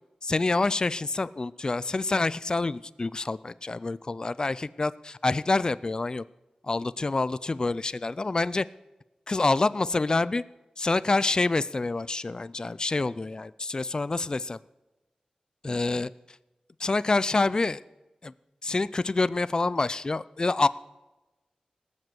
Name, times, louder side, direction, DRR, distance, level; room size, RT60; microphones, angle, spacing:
voice 1, 0.2-6.2 6.6-8.7 9.3-10.4 10.8-14.6 15.6-16.1 16.8-17.8 18.2-18.3 18.6-20.7, left 3 dB, 35° left, 17 dB, 0.4 m, -27 dB
18.5 x 7.6 x 7.9 m, 1.0 s
wide cardioid pair, 90°, 2 cm